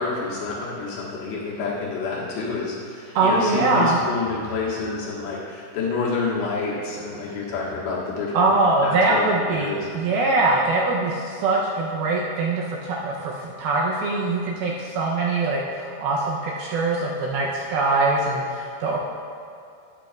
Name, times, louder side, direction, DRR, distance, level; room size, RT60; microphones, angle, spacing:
voice 1, 0.0-8.5 8.8-10.1, left 4 dB, 80° left, -5 dB, 3.5 m, -28 dB
voice 2, 3.2-4.0 8.3-19.0, right 2 dB, 75° right, -3 dB, 2.3 m, -22 dB
9.9 x 9.8 x 2.4 m, 2.5 s
omnidirectional pair, 4.9 m